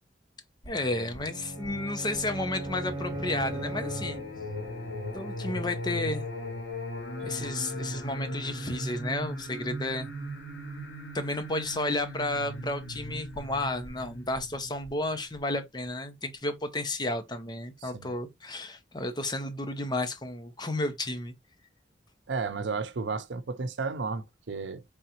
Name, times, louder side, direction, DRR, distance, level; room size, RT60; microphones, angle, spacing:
Singing, 0.6-15.4, left 1 dB, 85° left, 2.2 m, -38 dB
voice 1, 0.7-4.2 5.1-6.2 7.2-10.1 11.1-21.3, left 2 dB, 25° left, 0.8 m, -32 dB
sound 1, 1.2-4.7, right 2 dB, 25° right, 0.5 m, -38 dB
voice 2, 17.8-18.1 22.3-24.8, right 4 dB, 80° right, 0.6 m, -33 dB
3.9 x 3.5 x 2.9 m
head